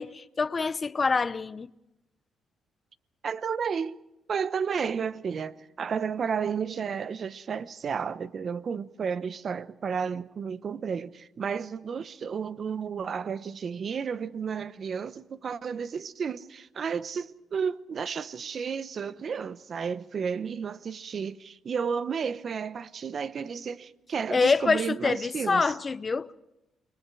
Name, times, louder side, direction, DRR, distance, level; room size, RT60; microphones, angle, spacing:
voice 1, 0.0-1.7 24.3-26.3, left 4 dB, 35° left, 0.8 m, -26 dB
voice 2, 3.2-4.0 4.3-25.6, right 6 dB, 50° right, 0.9 m, -32 dB
29.5 x 23.0 x 4.8 m
cardioid pair, 90°, 0 cm